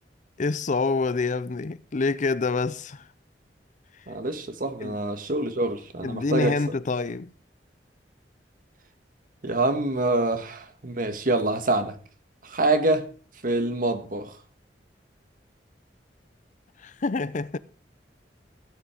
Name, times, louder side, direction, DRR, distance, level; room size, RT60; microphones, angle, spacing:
voice 1, 0.4-3.0 4.8-5.0 6.0-7.3 16.8-17.6, left 3 dB, 45° left, 0.6 m, -27 dB
voice 2, 4.1-6.6 9.4-12.0 12.4-13.1 13.4-14.3, right 2 dB, 50° right, 1.7 m, -26 dB
15.0 x 8.7 x 5.1 m
head